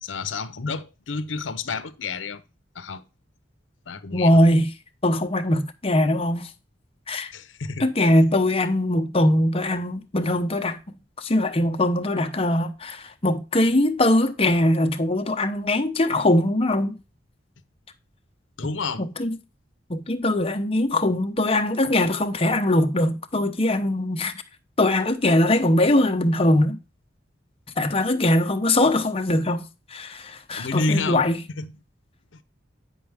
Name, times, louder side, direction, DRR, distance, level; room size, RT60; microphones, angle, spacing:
voice 1, 0.0-2.4 2.7-3.0 3.9-4.4 7.3-7.9 18.6-19.1 30.6-31.3 31.6-31.7 32.3-32.4, left 3 dB, 80° left, 0.7 m, -29 dB
voice 2, 4.1-4.7 5.0-6.5 7.1-7.3 7.8-17.0 19.2-19.3 19.9-24.3 24.8-26.8 27.8-29.6 29.9-31.4, left 1 dB, 30° left, 0.9 m, -21 dB
9.2 x 5.5 x 3.4 m
head